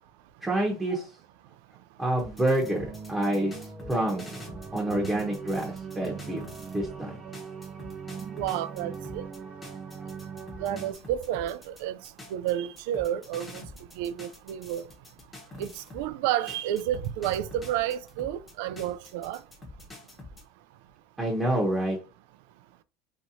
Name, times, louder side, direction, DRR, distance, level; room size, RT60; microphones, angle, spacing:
voice 1, 0.4-1.1 2.0-4.3 4.7-6.4 6.7-7.2 21.2-22.0, right 1 dB, 10° right, 0.9 m, -28 dB
sound 1, 2.2-7.0 7.3-16.1 16.5-20.4, left 2 dB, 15° left, 1.0 m, -47 dB
sound 2, 2.6-10.9, right 6 dB, 30° right, 0.6 m, -40 dB
voice 2, 8.3-9.2 10.6-12.0 12.3-13.6 14.0-14.9 15.6-19.4, right 11 dB, 75° right, 0.3 m, -30 dB
3.1 x 2.8 x 2.7 m
supercardioid pair, 120°, 0 cm